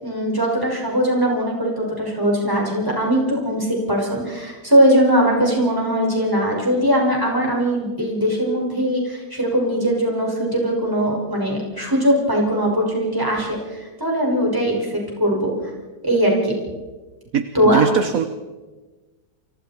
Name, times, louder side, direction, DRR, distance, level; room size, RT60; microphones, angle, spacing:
voice 1, 0.0-15.5 16.0-16.5 17.5-17.8, equal, 10° right, -2 dB, 6.1 m, -20 dB
voice 2, 17.3-18.3, right 7 dB, 55° right, 10 dB, 1.2 m, -21 dB
29.0 x 25.5 x 4.5 m, 1.3 s
omnidirectional pair, 2.1 m